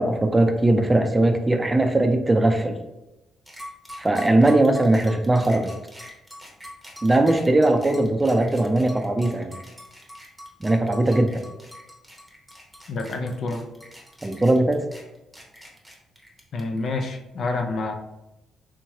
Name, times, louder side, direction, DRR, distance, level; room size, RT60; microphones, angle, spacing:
voice 1, 0.0-2.8 4.0-5.7 7.0-9.6 10.6-11.4 14.2-14.8, right 2 dB, 15° right, 6 dB, 0.4 m, -20 dB
sound 1, 3.5-16.9, equal, ahead, 0.9 m, -43 dB
voice 2, 12.9-13.7 16.5-17.9, left 3 dB, 60° left, 4 dB, 0.5 m, -28 dB
3.5 x 3.0 x 2.8 m, 0.97 s
cardioid pair, 90°, 0 cm